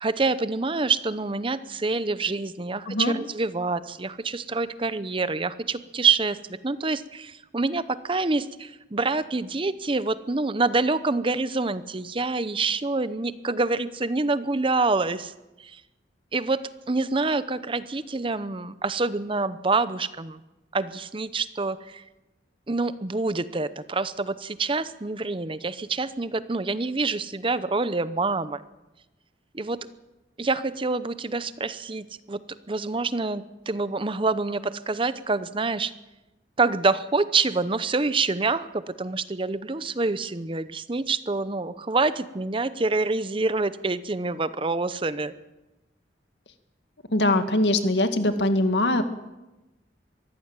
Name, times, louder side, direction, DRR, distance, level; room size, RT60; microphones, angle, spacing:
voice 1, 0.0-15.3 15.6-15.8 16.3-20.4 20.7-22.0 22.7-28.6 29.5-29.9 30.4-32.4 32.7-35.9 36.6-45.3, right 3 dB, 30° right, 14 dB, 0.7 m, -26 dB
voice 2, 47.1-49.0, left 1 dB, 75° left, 8 dB, 2.0 m, -22 dB
23.0 x 15.0 x 8.9 m, 1.0 s
head